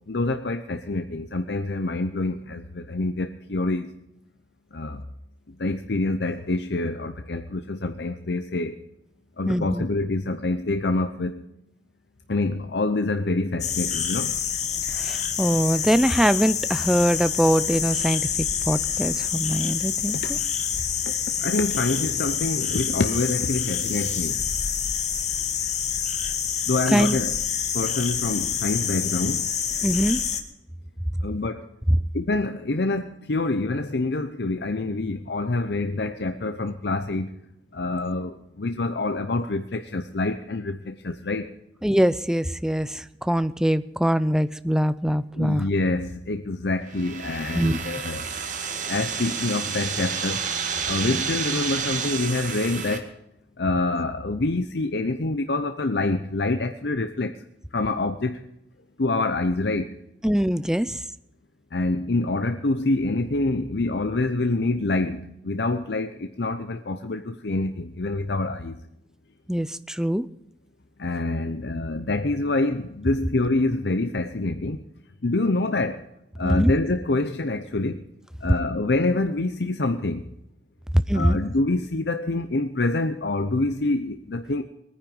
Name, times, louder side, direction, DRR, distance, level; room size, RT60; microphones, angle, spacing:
voice 1, 0.1-3.9 4.7-5.0 5.5-8.8 9.4-11.4 12.3-14.3 20.1-20.3 21.4-24.4 26.7-27.3 27.7-29.4 31.2-31.7 32.1-37.3 37.7-41.5 45.4-48.3 48.9-50.5 50.8-53.1 53.6-57.4 57.7-58.4 59.0-60.0 61.7-68.8 71.0-74.8 75.2-76.1 76.4-78.1 78.4-80.2 81.1-84.6, left 2 dB, 70° left, 8 dB, 0.8 m, -26 dB
voice 2, 9.5-9.8 14.9-20.2 26.9-27.2 29.8-30.2 31.9-32.0 41.8-45.6 47.6-47.8 51.0-51.2 60.2-61.0 69.5-70.3 76.4-76.7 81.1-81.4, equal, 5° right, 14 dB, 0.5 m, -23 dB
sound 1, 13.6-30.4, left 8 dB, 40° left, 1.5 m, -27 dB
sound 2, 46.9-53.0, right 6 dB, 45° right, 1.9 m, -30 dB
20.5 x 9.8 x 5.4 m, 0.83 s
head